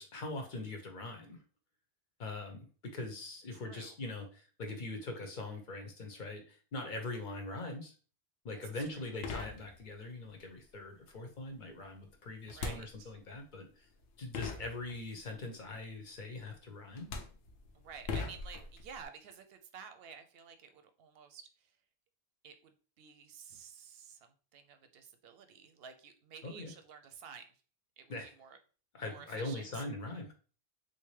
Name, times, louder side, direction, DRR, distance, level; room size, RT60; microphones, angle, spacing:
voice 1, 0.0-1.4 2.2-7.9 8.4-13.9 14.2-17.1 26.4-26.7 28.1-28.3 28.9-30.3, left 2 dB, 50° left, 4 dB, 0.8 m, -42 dB
voice 2, 3.5-4.0 8.5-8.9 12.4-13.1 17.7-21.8 22.4-27.5 28.0-28.1 28.4-28.6 29.0-29.8, right 6 dB, 65° right, 8 dB, 0.7 m, -52 dB
sound 1, 9.2-10.1 12.5-13.4 14.0-14.1 14.3-15.3 16.4-16.6 16.9-19.1, left 4 dB, 85° left, 0.9 m, -41 dB
3.5 x 2.6 x 3.1 m, 0.38 s
omnidirectional pair, 1.1 m